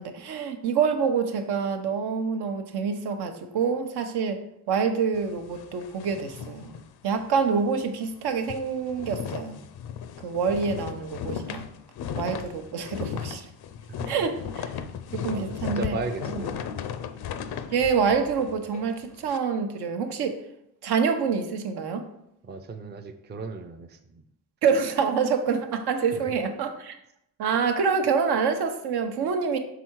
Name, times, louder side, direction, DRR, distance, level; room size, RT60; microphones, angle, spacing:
voice 1, 0.0-6.8 7.0-9.6 10.2-11.7 12.2-13.5 14.1-14.7 15.1-15.9 16.3-16.4 17.7-20.4 20.8-22.0 24.6-27.0 27.4-29.6, right 6 dB, 75° right, 6 dB, 0.9 m, -26 dB
sound 1, 5.1-7.4 7.7-7.9 8.2-19.4, left 8 dB, 70° left, 0.6 m, -36 dB
voice 2, 15.3-16.6 22.4-24.0, right 3 dB, 25° right, 6 dB, 0.5 m, -35 dB
6.1 x 3.6 x 4.5 m, 0.78 s
cardioid pair, 110°, 39 cm